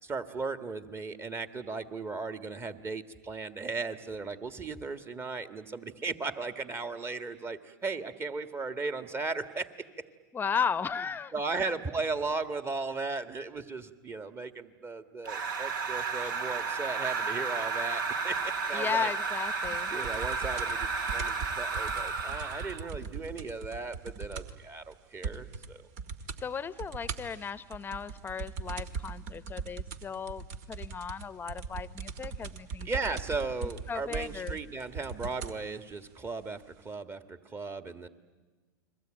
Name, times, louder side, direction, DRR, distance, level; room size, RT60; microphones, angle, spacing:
voice 1, 0.0-9.7 11.3-19.1 19.9-25.9 32.8-38.1, right 3 dB, 20° right, 10 dB, 1.7 m, -36 dB
voice 2, 10.3-11.3 18.7-20.0 26.4-32.9 33.9-34.6, left 6 dB, 20° left, 16 dB, 0.9 m, -35 dB
sound 1, 15.2-22.9, right 4 dB, 75° right, 2.1 m, -32 dB
sound 2, 19.6-24.7 24.9-25.0 25.2-25.7 26.0-26.4 26.8-35.6 36.4-36.5, right 5 dB, 55° right, 1.9 m, -40 dB
30.0 x 22.0 x 9.0 m, 1.3 s
hypercardioid pair, 110°, 11 cm